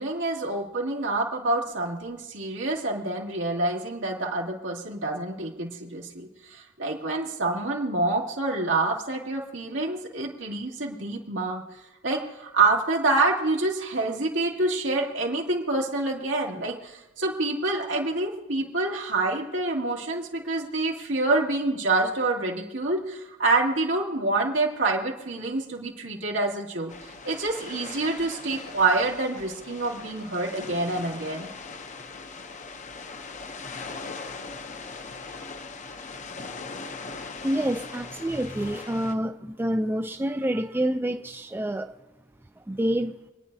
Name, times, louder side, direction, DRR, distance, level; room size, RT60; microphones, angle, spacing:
voice 1, 0.0-11.6 12.0-26.9 27.2-31.5, right 2 dB, 90° right, -1 dB, 2.3 m, -27 dB
sound 1, 26.9-39.1, left 4 dB, 40° left, 0.7 m, -40 dB
voice 2, 37.4-41.9 42.7-43.1, right 1 dB, 10° right, 7 dB, 0.4 m, -27 dB
28.5 x 9.8 x 2.7 m, 1.0 s
head